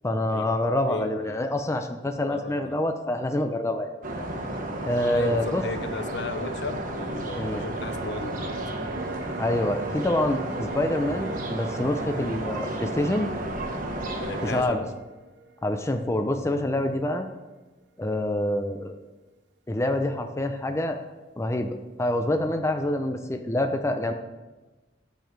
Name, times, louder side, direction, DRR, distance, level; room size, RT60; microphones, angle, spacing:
voice 1, 0.0-3.9 4.8-5.6 7.4-7.7 9.4-13.3 14.4-14.9 15.6-17.3 18.0-18.9 19.7-21.0 21.4-24.1, left 1 dB, 15° left, 5 dB, 0.5 m, -26 dB
voice 2, 0.9-1.5 2.2-2.8 5.1-8.6 14.2-14.9, left 3 dB, 65° left, 9 dB, 0.7 m, -35 dB
sound 1, 4.0-14.6, right 1 dB, 45° right, 1.2 m, -32 dB
sound 2, 7.7-17.3 17.6-17.7, right 4 dB, 65° right, 0.5 m, -43 dB
9.0 x 7.0 x 4.6 m, 1.2 s
head